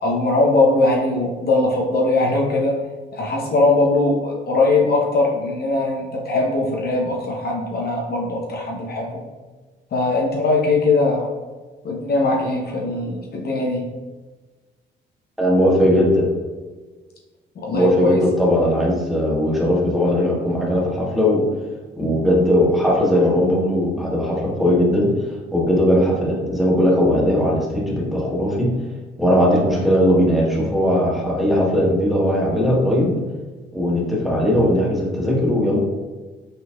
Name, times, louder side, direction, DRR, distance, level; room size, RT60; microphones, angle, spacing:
voice 1, 0.0-2.8 3.1-9.2 9.9-11.3 11.8-13.8 17.6-18.2, left 2 dB, 50° left, -1 dB, 0.8 m, -20 dB
voice 2, 15.4-16.3 17.7-21.4 22.0-25.1 25.5-28.7 29.2-33.1 33.7-35.8, equal, ahead, -5 dB, 1.5 m, -18 dB
5.4 x 3.8 x 2.3 m, 1.3 s
cardioid pair, 90°, 20 cm